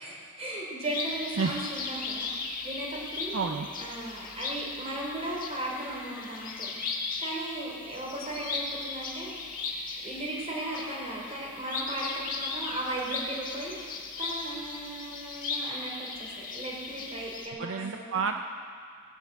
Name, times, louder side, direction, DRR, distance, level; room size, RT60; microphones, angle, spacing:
voice 1, 0.0-2.3 2.6-9.5 10.0-18.2, right 1 dB, 30° right, -3 dB, 3.4 m, -37 dB
sound 1, 0.8-17.5, left 4 dB, 40° left, 1.8 m, -37 dB
voice 2, 3.3-3.7 17.6-18.4, right 5 dB, 65° right, 6 dB, 0.5 m, -30 dB
18.5 x 8.2 x 7.9 m, 2.1 s
head